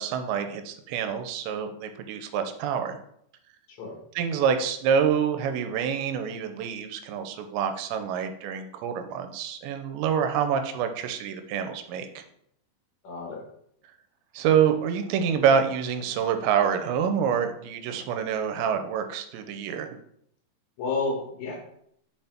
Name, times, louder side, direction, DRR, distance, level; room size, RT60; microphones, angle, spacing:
voice 1, 0.0-3.0 4.2-12.1 14.3-19.9, right 7 dB, 85° right, 7 dB, 2.9 m, -26 dB
voice 2, 13.0-13.4 20.8-21.6, left 3 dB, 65° left, 0 dB, 1.8 m, -30 dB
6.0 x 5.5 x 4.4 m, 0.72 s
omnidirectional pair, 5.1 m